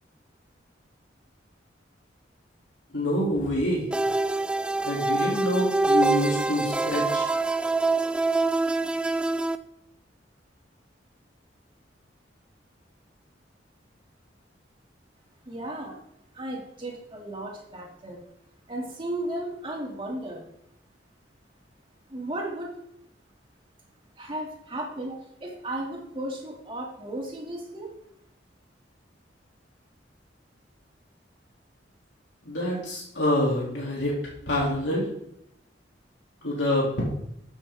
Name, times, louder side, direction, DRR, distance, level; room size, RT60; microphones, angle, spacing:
voice 1, 2.9-3.9 4.8-7.3 32.4-34.2 34.5-35.1 36.4-37.0, left 1 dB, 80° left, -4 dB, 3.0 m, -26 dB
sound 1, 3.9-9.6, right 2 dB, 5° right, 0.4 m, -25 dB
voice 2, 15.5-16.0 16.3-18.2 18.7-20.4 22.1-22.7 24.2-27.9, right 1 dB, 30° right, -2 dB, 2.7 m, -35 dB
14.0 x 7.1 x 3.7 m, 0.77 s
head